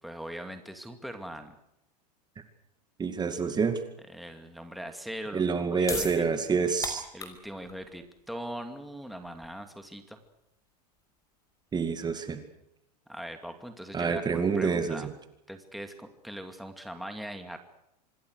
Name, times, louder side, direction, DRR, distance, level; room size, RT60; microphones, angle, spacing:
voice 1, 0.0-1.5 4.1-6.2 7.1-10.2 13.1-15.1 15.5-17.6, equal, ahead, 6 dB, 2.4 m, -41 dB
voice 2, 3.0-3.8 5.3-7.0 11.7-12.4 13.9-15.1, right 5 dB, 20° right, 8 dB, 2.3 m, -27 dB
sound 1, 5.8-12.2, left 3 dB, 15° left, 5.4 m, -42 dB
26.5 x 20.5 x 6.5 m, 0.81 s
hypercardioid pair, 115°, 21 cm